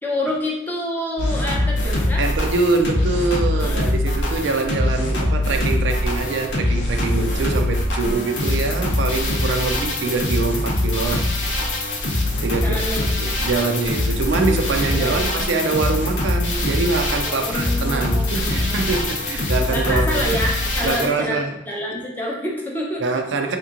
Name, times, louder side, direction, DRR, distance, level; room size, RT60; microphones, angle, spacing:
voice 1, 0.0-2.2 3.5-3.9 12.6-13.0 14.9-15.5 17.3-18.9 19.4-23.0, left 1 dB, 10° left, -3 dB, 0.5 m, -28 dB
sound 1, 1.2-21.1, left 1 dB, 80° left, 0.7 m, -23 dB
voice 2, 2.2-11.3 12.4-12.9 13.2-20.3 20.8-21.5 21.9-22.0 23.0-23.6, right 3 dB, 75° right, 5 dB, 0.4 m, -24 dB
3.6 x 2.9 x 2.4 m, 0.93 s
head